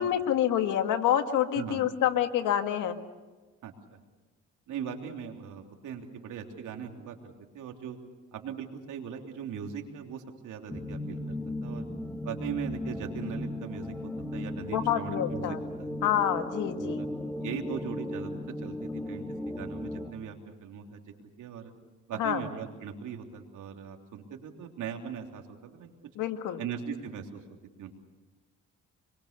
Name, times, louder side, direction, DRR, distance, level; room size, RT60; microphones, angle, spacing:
voice 1, 0.0-2.9 14.7-15.6 16.0-17.0 22.2-22.4 26.2-26.6, left 10 dB, 85° left, 7 dB, 1.8 m, -27 dB
voice 2, 3.6-4.0 4.7-8.0 8.3-11.8 12.2-13.9 14.3-15.9 16.8-17.1 17.4-21.7 22.1-25.9 26.6-27.4 27.8-27.9, right 7 dB, 80° right, 3 dB, 3.3 m, -39 dB
sound 1, 10.7-20.1, left 1 dB, 5° left, 2.0 m, -36 dB
26.5 x 23.0 x 6.7 m, 1.2 s
cardioid pair, 90°, 30 cm